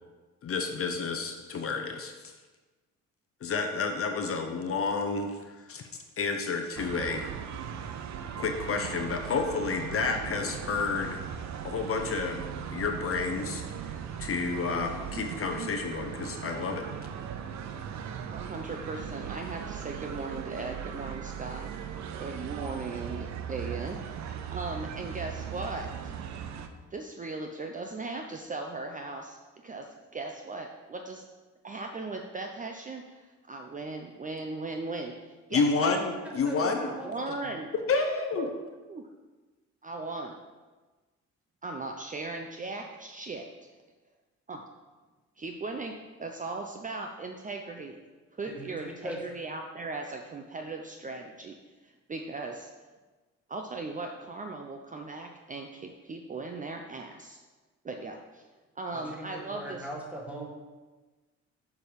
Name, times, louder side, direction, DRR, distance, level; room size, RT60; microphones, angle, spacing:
voice 1, 0.4-2.3 3.4-5.8 6.2-7.3 8.4-11.2 11.6-13.6 13.9-16.9 35.5-36.9 37.9-38.5, left 4 dB, 50° left, 4 dB, 0.8 m, -30 dB
sound 1, 6.8-26.7, right 8 dB, 65° right, 0.7 m, -38 dB
voice 2, 18.3-21.7 22.2-26.1 26.9-31.2 31.6-35.6 36.8-37.7 38.4-38.5 38.9-39.1 39.8-40.3 41.6-43.8 44.5-44.6 45.4-48.0 48.3-52.7 53.5-57.4 57.8-58.5 58.8-59.9, right 3 dB, 25° right, 3 dB, 0.6 m, -38 dB
voice 3, 36.2-37.4 48.5-48.8 49.0-49.2 58.9-60.5, equal, 5° right, -2 dB, 1.9 m, -40 dB
6.8 x 4.6 x 5.1 m, 1.3 s
cardioid pair, 90°, 30 cm